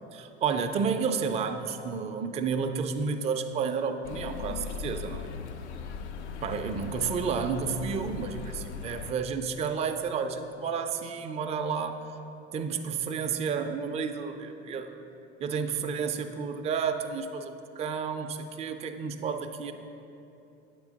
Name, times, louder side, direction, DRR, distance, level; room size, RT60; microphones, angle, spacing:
voice 1, 0.1-5.3 6.4-12.0 12.5-15.0 15.4-19.7, right 6 dB, 20° right, 6 dB, 0.3 m, -31 dB
sound 1, 4.0-9.1, left 6 dB, 90° left, 0.5 m, -38 dB
8.4 x 3.6 x 5.1 m, 2.8 s
hypercardioid pair, 85°, 33 cm